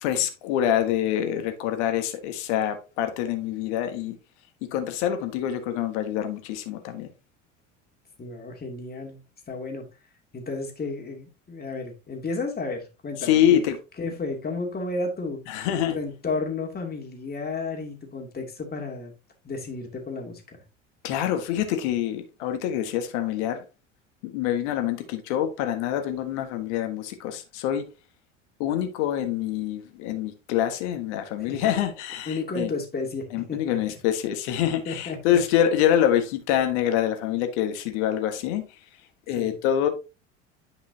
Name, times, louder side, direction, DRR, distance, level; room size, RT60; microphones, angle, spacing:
voice 1, 0.0-4.2 4.6-7.1 13.2-13.8 15.5-16.0 21.0-23.6 24.2-27.9 28.6-32.7 33.3-38.7 39.3-39.9, left 10 dB, 65° left, 1.6 m, -25 dB
voice 2, 8.2-9.8 10.3-13.6 14.0-19.1 19.4-20.6 31.5-31.6 32.3-33.8 34.9-35.2 39.4-39.6, left 3 dB, 25° left, 2.7 m, -32 dB
10.0 x 5.4 x 2.8 m
hypercardioid pair, 70°, 37 cm